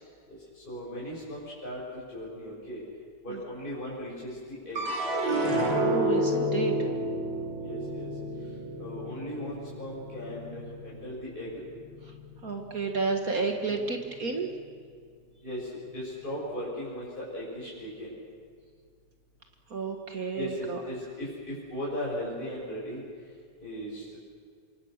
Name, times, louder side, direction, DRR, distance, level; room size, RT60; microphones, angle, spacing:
voice 1, 0.3-2.8 3.2-4.8 7.6-8.1 8.8-11.6 13.7-13.9 15.4-18.1 20.3-23.0 23.6-24.2, equal, 30° left, -6 dB, 6.7 m, -37 dB
sound 1, 4.8-11.2 11.6-12.3, right 1 dB, 90° right, 7.8 m, -30 dB
voice 2, 5.8-6.7 12.4-14.5 19.7-20.8, right 4 dB, 55° right, 4 dB, 2.1 m, -31 dB
27.0 x 25.0 x 6.6 m, 2.1 s
omnidirectional pair, 1.9 m